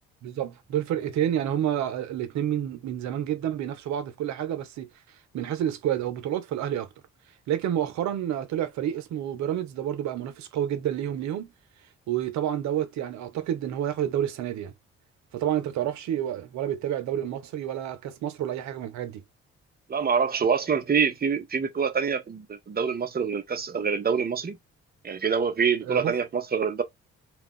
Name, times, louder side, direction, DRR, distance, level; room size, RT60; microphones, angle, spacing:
voice 1, 0.2-4.9 5.3-6.9 7.5-11.5 12.1-14.7 15.3-19.2 25.9-26.1, right 11 dB, 70° right, 0.7 m, -29 dB
voice 2, 19.9-24.6 25.0-26.8, right 6 dB, 30° right, 0.8 m, -26 dB
2.3 x 2.3 x 3.6 m
hypercardioid pair, 55°, 30 cm